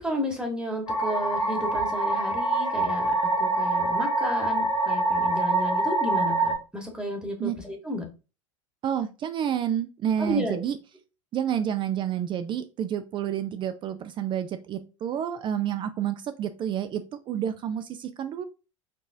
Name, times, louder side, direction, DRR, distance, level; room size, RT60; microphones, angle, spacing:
voice 1, 0.0-8.0 10.2-10.6, equal, 5° right, 1 dB, 1.2 m, -32 dB
sound 1, 0.9-6.6, right 2 dB, 80° left, 1.0 m, -25 dB
voice 2, 8.8-10.8 11.3-18.4, right 9 dB, 30° right, 9 dB, 0.4 m, -29 dB
4.4 x 3.0 x 2.6 m, 0.31 s
figure-of-eight pair, 80°, 17 cm